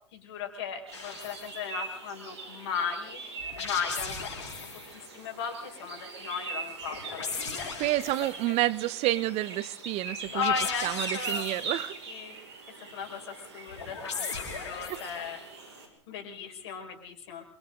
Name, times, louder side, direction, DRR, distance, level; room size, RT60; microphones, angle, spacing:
voice 1, 0.1-3.2 3.6-4.3 4.9-7.7 8.5-8.6 10.3-11.5 12.1-12.3 12.8-15.4 16.1-17.4, left 6 dB, 65° left, 5.3 m, -36 dB
sound 1, 0.9-1.6 3.4-5.0 6.8-8.5 10.2-11.9 13.7-15.3, left 5 dB, 85° left, 5.3 m, -38 dB
sound 2, 0.9-15.9, right 4 dB, 80° right, 5.9 m, -42 dB
voice 2, 7.8-10.5 10.8-11.9, right 16 dB, 45° right, 1.0 m, -29 dB
27.5 x 24.0 x 3.9 m
hypercardioid pair, 95°, 14 cm